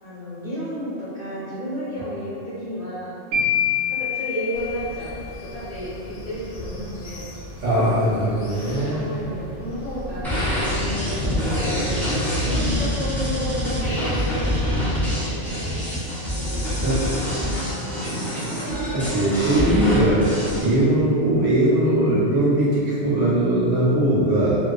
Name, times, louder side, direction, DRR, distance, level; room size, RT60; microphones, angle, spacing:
voice 1, 0.0-3.2 3.9-5.2 5.5-7.3 7.8-8.2 8.9-15.0 15.3-15.7 16.3-18.8, equal, 40° left, -12 dB, 0.6 m, -32 dB
sound 1, 3.3-5.4, left 7 dB, 60° right, 0.7 m, -25 dB
sound 2, 4.5-14.7, left 1 dB, 75° left, 0.9 m, -34 dB
voice 2, 7.6-9.0 16.8-17.0 18.9-20.2 20.6-24.6, right 1 dB, 80° right, -8 dB, 1.1 m, -20 dB
sound 3, 10.2-20.6, equal, ahead, 0.4 m, -25 dB
2.4 x 2.3 x 2.3 m, 2.5 s
omnidirectional pair, 1.2 m